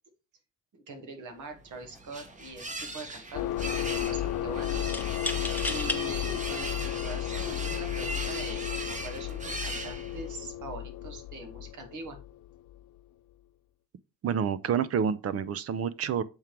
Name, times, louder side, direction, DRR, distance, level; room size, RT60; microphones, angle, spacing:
voice 1, 0.7-4.9 5.4-12.2, right 3 dB, 75° right, 1.9 m, -43 dB
sound 1, 1.5-10.4, right 2 dB, 25° right, 1.1 m, -39 dB
sound 2, 1.8-2.0 2.3-3.0 4.9-6.0 6.7-6.8 7.7-8.0, left 2 dB, 5° left, 0.7 m, -35 dB
sound 3, 3.3-12.8, left 13 dB, 85° left, 0.6 m, -34 dB
voice 2, 14.2-16.2, right 7 dB, 50° right, 0.6 m, -28 dB
7.2 x 3.7 x 4.5 m
cardioid pair, 90°, 30 cm